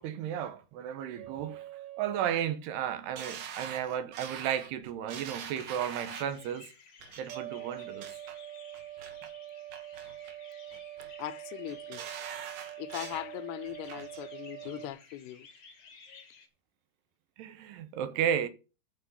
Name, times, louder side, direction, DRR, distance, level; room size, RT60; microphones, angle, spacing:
voice 1, 0.0-1.6 2.0-6.7 7.2-8.1 17.4-18.5, right 9 dB, 85° right, 3.0 m, -33 dB
sound 1, 1.2-2.5 7.3-14.9, right 14 dB, 45° right, 2.4 m, -45 dB
sound 2, 3.2-6.4 7.0-7.4 7.8-8.4 8.7-9.3 9.7-10.4 10.7-11.3 11.7-13.3 13.7-14.2 14.6-14.7, right 7 dB, 60° right, 2.9 m, -43 dB
sound 3, 5.6-16.5, left 5 dB, 55° left, 1.2 m, -56 dB
voice 2, 11.2-12.0 12.8-15.5, left 13 dB, 80° left, 2.5 m, -40 dB
12.5 x 4.7 x 7.9 m
omnidirectional pair, 4.8 m